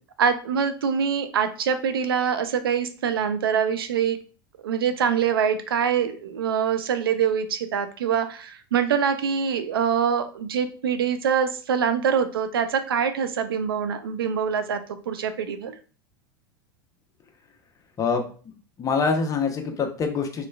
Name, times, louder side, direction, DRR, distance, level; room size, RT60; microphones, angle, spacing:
voice 1, 0.2-4.2 4.6-14.8 15.1-15.7, right 7 dB, 85° right, 10 dB, 0.4 m, -24 dB
voice 2, 18.8-20.5, left 5 dB, 30° left, 4 dB, 0.7 m, -24 dB
3.2 x 3.0 x 2.3 m, 0.39 s
hypercardioid pair, 90°, 12 cm